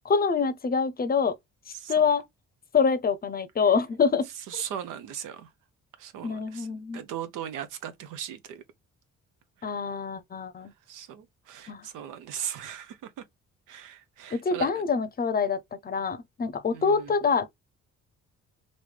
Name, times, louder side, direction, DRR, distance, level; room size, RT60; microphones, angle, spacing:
voice 1, 0.0-1.4 1.9-2.2 2.7-4.3 6.2-7.0 9.6-10.7 11.7-11.8 14.3-15.6 15.8-17.5, left 5 dB, 30° left, 0.6 m, -25 dB
voice 2, 4.3-5.5 6.0-6.7 6.9-8.6 9.6-9.7 10.9-13.2 13.7-14.7 16.7-17.1, right 9 dB, 85° right, 0.6 m, -38 dB
3.1 x 2.6 x 3.2 m
cardioid pair, 90°, 30 cm